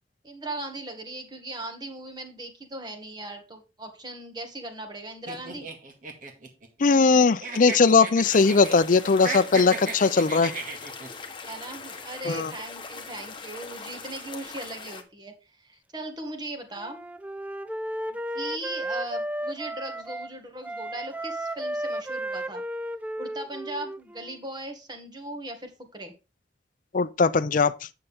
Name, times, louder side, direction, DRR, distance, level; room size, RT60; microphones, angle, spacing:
voice 1, 0.2-5.7 11.4-17.0 18.3-22.6 23.2-26.1, right 1 dB, 25° right, 1.7 m, -38 dB
sound 1, 5.3-7.1 7.4-8.8 9.1-11.1, right 3 dB, 50° right, 2.0 m, -35 dB
voice 2, 6.8-10.5 12.3-12.5 26.9-27.7, left 4 dB, 50° left, 0.5 m, -20 dB
sound 2, 8.2-15.0, left 4 dB, 30° left, 1.2 m, -41 dB
Wind instrument woodwind instrument, 16.8-20.3 20.6-24.4, right 1 dB, 10° right, 0.3 m, -34 dB
9.5 x 6.7 x 3.5 m
head